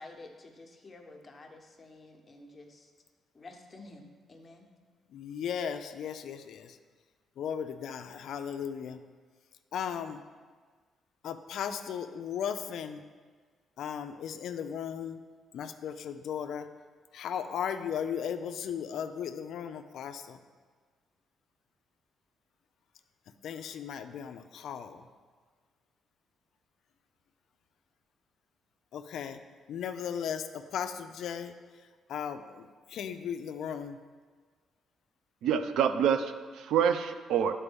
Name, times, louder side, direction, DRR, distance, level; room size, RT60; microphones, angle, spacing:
voice 1, 0.0-2.9 3.3-4.6, left 2 dB, 30° left, 2 dB, 1.0 m, -50 dB
voice 2, 5.1-6.7 7.4-9.0 9.7-10.2 11.2-13.0 13.8-15.2 15.5-16.7 17.1-20.4 23.4-25.0 28.9-29.4 29.7-31.5 32.1-34.0, left 8 dB, 75° left, 8 dB, 0.3 m, -36 dB
voice 3, 35.4-37.5, right 8 dB, 80° right, 9 dB, 0.4 m, -27 dB
9.9 x 4.4 x 3.5 m, 1.5 s
cardioid pair, 90°, 0 cm